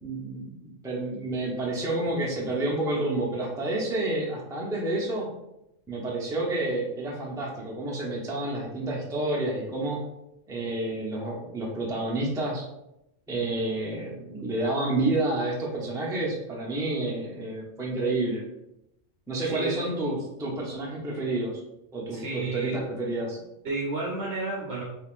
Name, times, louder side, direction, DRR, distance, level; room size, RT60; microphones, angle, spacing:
voice 1, 0.0-5.3 5.9-10.0 10.5-12.6 13.3-18.4 19.3-21.5 21.9-23.4, right 2 dB, 5° right, -3 dB, 0.4 m, -29 dB
voice 2, 19.4-19.8 22.1-22.9 23.6-24.8, right 3 dB, 60° right, -3 dB, 0.9 m, -31 dB
3.5 x 3.5 x 2.5 m, 0.85 s
omnidirectional pair, 1.4 m